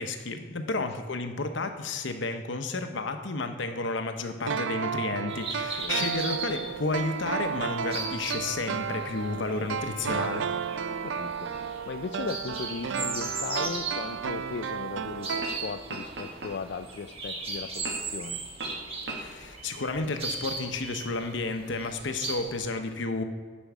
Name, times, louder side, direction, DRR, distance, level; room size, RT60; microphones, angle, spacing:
voice 1, 0.0-10.5 19.1-23.2, left 3 dB, 85° left, 7 dB, 0.8 m, -32 dB
sound 1, 4.5-16.1 16.4-16.5, right 6 dB, 85° right, 0.4 m, -33 dB
sound 2, 5.3-22.6, right 3 dB, 30° right, 1.3 m, -38 dB
voice 2, 10.9-18.4, left 5 dB, 60° left, 7 dB, 0.3 m, -38 dB
sound 3, 14.1-14.2 15.3-15.6 15.9-16.9 17.8-18.2 18.6-18.8 19.1-19.2, right 2 dB, 70° right, 1.5 m, -37 dB
10.5 x 5.3 x 6.1 m, 1.5 s
head